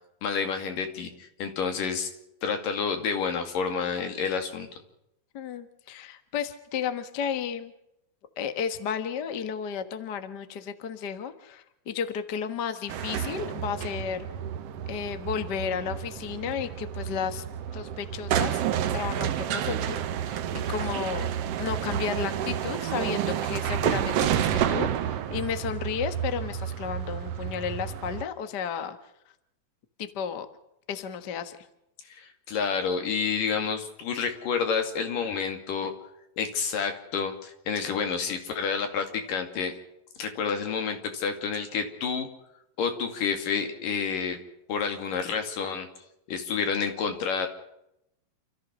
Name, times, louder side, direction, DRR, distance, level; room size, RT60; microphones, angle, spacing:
voice 1, 0.2-2.1 2.4-4.7 32.1-35.9 36.4-39.7 40.2-42.3 42.8-44.4 44.7-45.9 46.3-47.5, left 6 dB, 70° left, 6 dB, 4.0 m, -29 dB
voice 2, 5.3-7.7 8.4-14.3 14.9-17.4 17.7-18.6 18.9-21.3 21.6-29.0 30.0-30.5 30.9-31.7, left 7 dB, 50° left, 9 dB, 1.3 m, -33 dB
sound 1, 12.9-28.2, right 10 dB, 70° right, 1.5 m, -30 dB
29.0 x 14.5 x 6.2 m, 0.82 s
omnidirectional pair, 4.0 m